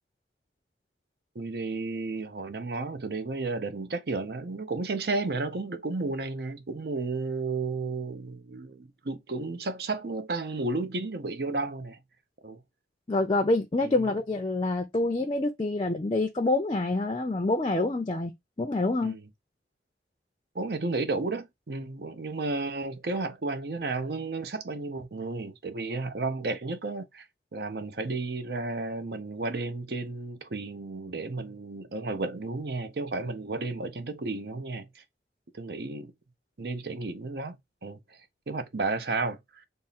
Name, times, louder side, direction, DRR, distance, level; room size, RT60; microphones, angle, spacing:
voice 1, 1.3-12.0 12.4-12.6 13.8-14.1 19.0-19.2 20.5-27.2 27.5-35.0 35.5-36.1 36.6-37.6 37.8-38.0 38.5-39.7, right 3 dB, 60° right, 0.6 m, -33 dB
voice 2, 13.1-19.2, left 2 dB, 30° left, 0.4 m, -27 dB
3.6 x 2.0 x 4.0 m
head